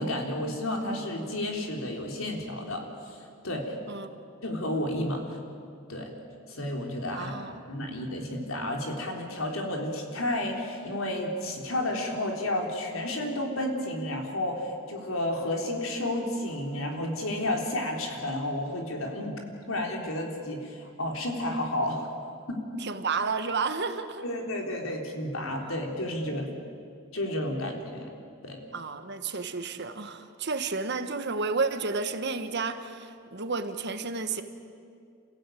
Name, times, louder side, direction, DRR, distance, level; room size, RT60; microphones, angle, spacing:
voice 1, 0.0-3.2 3.4-3.8 4.4-5.4 5.9-6.1 6.5-19.4 19.7-22.1 22.5-22.8 24.2-26.5 27.1-28.1 28.4-28.6, left 1 dB, 90° left, 2 dB, 3.6 m, -31 dB
voice 2, 7.1-7.6 22.8-24.2 25.6-25.8 28.7-34.4, right 4 dB, 55° right, 9 dB, 1.4 m, -31 dB
27.5 x 16.0 x 9.2 m, 2.4 s
head